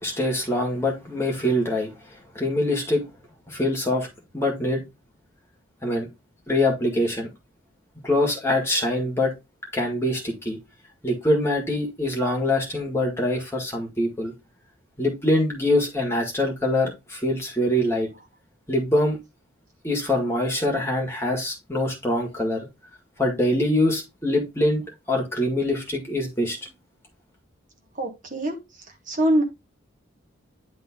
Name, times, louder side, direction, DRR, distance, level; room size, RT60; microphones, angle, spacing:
voice 1, 0.0-3.0 3.5-4.1 4.3-4.8 5.8-6.1 6.5-7.3 8.0-9.3 9.7-10.6 11.0-14.3 15.0-18.1 18.7-19.2 19.8-22.7 23.2-24.8 25.1-26.6, left 1 dB, 10° left, 1.9 m, -24 dB
voice 2, 28.0-28.6 29.1-29.4, right 1 dB, 40° right, 1.5 m, -23 dB
10.0 x 3.7 x 3.7 m
head